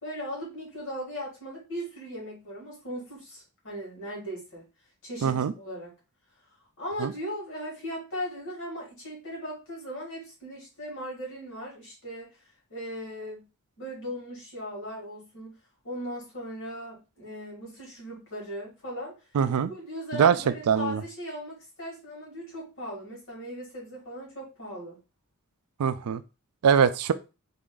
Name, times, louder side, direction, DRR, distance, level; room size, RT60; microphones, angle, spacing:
voice 1, 0.0-4.6 5.0-5.9 6.8-12.3 12.7-13.4 13.8-15.6 15.8-19.1 19.7-25.0, equal, 60° left, -3 dB, 2.2 m, -38 dB
voice 2, 5.2-5.5 7.0-7.1 19.3-19.7 20.1-20.4 20.7-21.0 25.8-26.2 26.6-27.1, right 7 dB, 80° right, 13 dB, 0.4 m, -22 dB
3.5 x 2.5 x 3.7 m, 0.30 s
head